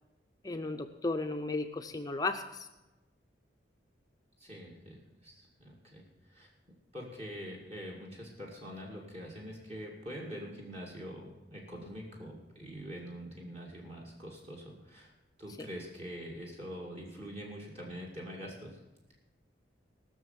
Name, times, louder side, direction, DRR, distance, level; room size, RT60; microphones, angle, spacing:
voice 1, 0.4-2.7 15.6-15.7, left 3 dB, 20° left, 5 dB, 0.6 m, -34 dB
voice 2, 4.4-6.5 6.9-15.1 15.4-18.8, equal, 35° right, -2 dB, 2.4 m, -44 dB
19.5 x 6.6 x 7.4 m, 1.0 s
head